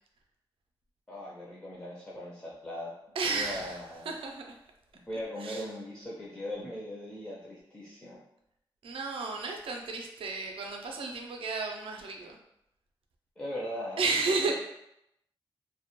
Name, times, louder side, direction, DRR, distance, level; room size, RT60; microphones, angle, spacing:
voice 1, 1.1-2.9 3.2-4.1 5.1-8.2 13.4-14.1, left 1 dB, 15° left, -6 dB, 0.4 m, -39 dB
voice 2, 3.1-4.5 5.4-5.6 8.8-12.4 14.0-14.5, right 4 dB, 85° right, 2 dB, 0.4 m, -33 dB
2.1 x 2.1 x 2.9 m, 0.79 s
wide cardioid pair, 160°, 9 cm